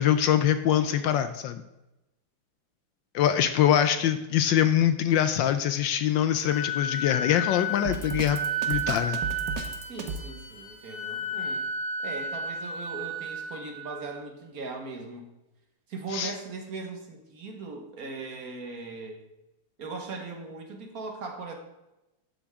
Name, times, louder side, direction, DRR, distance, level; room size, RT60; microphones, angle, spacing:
voice 1, 0.0-1.6 3.1-8.4 8.7-9.2 16.1-16.3, left 10 dB, 75° left, 10 dB, 1.1 m, -24 dB
voice 2, 0.7-1.2 9.9-11.7 12.0-15.3 15.9-19.2 19.8-21.5, right 3 dB, 45° right, 3 dB, 1.7 m, -39 dB
Wind instrument woodwind instrument, 6.4-14.2, equal, 15° right, 2.5 m, -33 dB
Drum kit, 7.8-10.3, right 4 dB, 60° right, 1.5 m, -34 dB
12.5 x 7.8 x 3.6 m, 0.96 s
omnidirectional pair, 2.4 m